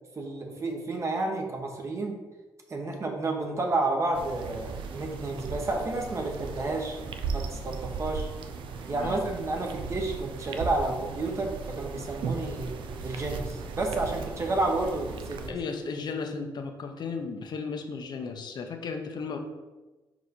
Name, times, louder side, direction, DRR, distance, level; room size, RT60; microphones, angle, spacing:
voice 1, 0.1-2.2 2.7-7.0 7.3-8.3 8.9-12.8 13.0-15.6, right 2 dB, 35° right, 2 dB, 1.0 m, -30 dB
sound 1, 4.1-15.5, right 5 dB, 90° right, 0.5 m, -37 dB
voice 2, 8.9-9.2 15.5-19.4, left 5 dB, 60° left, 4 dB, 0.8 m, -35 dB
5.0 x 4.7 x 4.1 m, 1.2 s
cardioid pair, 115°, 8 cm